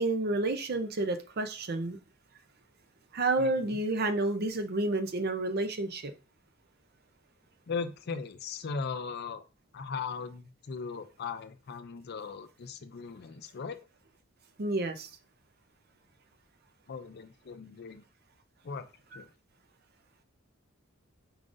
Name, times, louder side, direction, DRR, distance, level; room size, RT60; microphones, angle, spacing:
voice 1, 0.0-2.0 3.1-6.1 14.6-15.1 19.1-19.2, right 2 dB, 50° right, 0.6 m, -30 dB
voice 2, 3.4-3.8 7.7-9.4 9.7-13.8 16.9-18.0 18.6-18.9 19.1-19.3, left 5 dB, 50° left, 0.4 m, -38 dB
4.8 x 3.8 x 2.5 m
head